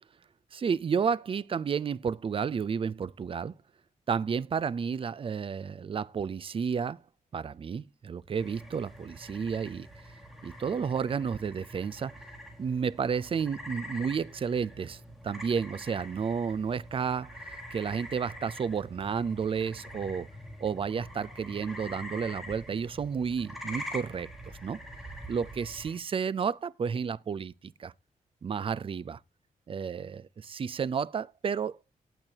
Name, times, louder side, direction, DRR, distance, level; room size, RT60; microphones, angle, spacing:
voice 1, 0.5-3.5 4.1-7.0 7.3-9.9 10.4-12.1 12.6-20.3 20.6-24.3 24.6-24.8 25.3-27.9 28.4-29.2 29.7-31.8, right 6 dB, 40° right, 0.5 m, -31 dB
sound 1, 8.4-26.0, equal, ahead, 4.0 m, -45 dB
18.0 x 8.0 x 2.8 m
wide cardioid pair, 125°, 15 cm